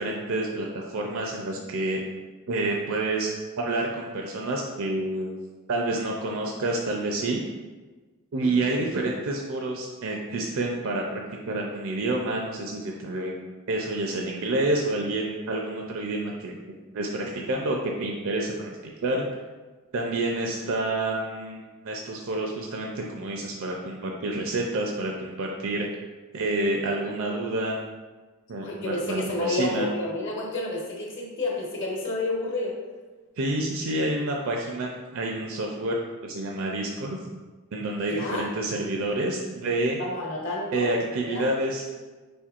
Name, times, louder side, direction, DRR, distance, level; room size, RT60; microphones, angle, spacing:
voice 1, 0.0-2.0 2.5-3.3 3.6-5.3 5.7-7.4 8.3-11.2 11.5-13.4 13.7-16.6 16.9-18.7 19.0-19.2 19.9-25.9 26.3-27.8 28.5-29.9 33.4-36.0 36.2-37.2 37.7-40.0 40.7-41.8, right 2 dB, 65° right, 0 dB, 0.5 m, -28 dB
voice 2, 8.4-8.8 28.6-32.7 38.1-38.5 40.0-40.9 41.3-41.5, left 2 dB, 55° left, -2 dB, 1.1 m, -30 dB
5.0 x 4.3 x 2.4 m, 1.3 s
head